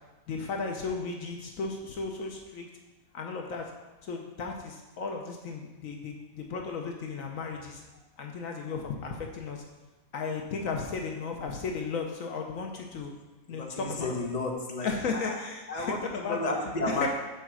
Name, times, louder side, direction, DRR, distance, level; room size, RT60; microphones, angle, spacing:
voice 1, 0.3-2.7 3.1-3.6 4.0-7.8 8.2-9.6 10.1-13.1 13.5-14.1 14.8-16.4 16.8-17.1, left 4 dB, 70° left, 2 dB, 1.2 m, -35 dB
voice 2, 13.5-15.4 15.7-17.1, left 2 dB, 30° left, 0 dB, 1.1 m, -32 dB
7.0 x 4.5 x 6.2 m, 1.1 s
omnidirectional pair, 1.5 m